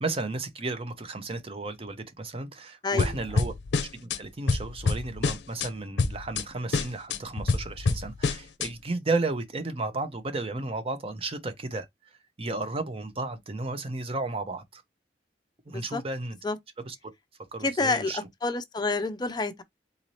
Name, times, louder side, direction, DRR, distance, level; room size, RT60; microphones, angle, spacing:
voice 1, 0.0-3.5 3.8-11.9 12.4-14.8 15.7-16.4 16.9-17.0 17.5-18.2, right 3 dB, 35° right, 0.7 m, -33 dB
sound 1, 3.0-4.2 4.5-5.7 6.0-6.4 6.7-8.7, left 4 dB, 80° left, 0.5 m, -27 dB
voice 2, 15.7-16.0 16.4-16.6 17.6-19.6, left 3 dB, 25° left, 0.5 m, -28 dB
4.0 x 2.7 x 3.1 m
head